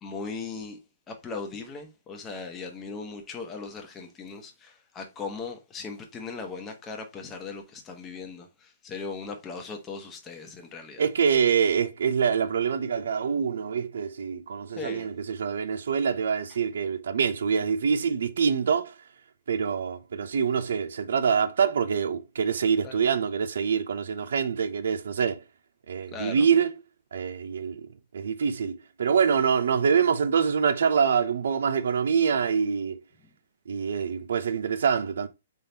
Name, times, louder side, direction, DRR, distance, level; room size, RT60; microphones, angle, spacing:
voice 1, 0.0-0.8 1.1-11.0 14.8-15.1 22.8-23.1 26.1-26.5, left 4 dB, 20° left, 1.0 m, -38 dB
voice 2, 11.0-18.9 19.5-25.4 25.9-26.7 27.1-27.9 28.1-33.0 33.7-35.3, right 6 dB, 75° right, 0.6 m, -25 dB
3.7 x 3.4 x 2.8 m
hypercardioid pair, 135°, 0 cm